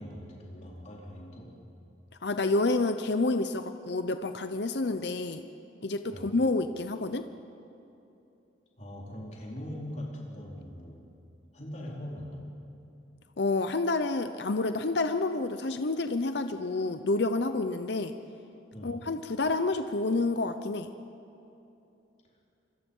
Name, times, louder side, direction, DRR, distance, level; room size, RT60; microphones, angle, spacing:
voice 1, 0.0-1.4 6.1-6.4 8.8-11.1 11.5-12.5 18.7-19.0, left 1 dB, 40° left, -3 dB, 4.3 m, -41 dB
voice 2, 2.2-5.4 5.8-7.2 13.4-18.1 18.8-20.9, left 3 dB, 65° left, 9 dB, 0.7 m, -29 dB
26.5 x 22.5 x 5.5 m, 2.8 s
head